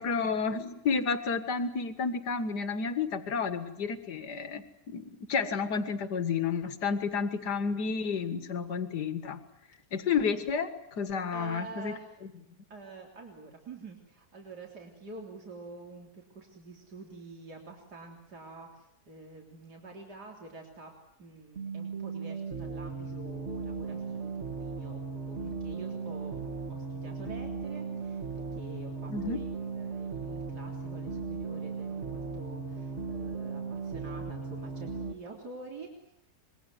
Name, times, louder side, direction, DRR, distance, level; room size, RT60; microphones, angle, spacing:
voice 1, 0.0-9.4 9.9-11.9 29.1-29.4, left 5 dB, 85° left, 10 dB, 2.2 m, -31 dB
voice 2, 11.3-12.2 12.7-36.1, right 3 dB, 80° right, 1 dB, 4.0 m, -47 dB
sound 1, 21.6-35.1, right 5 dB, 45° right, 2.0 m, -37 dB
26.0 x 22.0 x 9.6 m, 0.77 s
omnidirectional pair, 1.7 m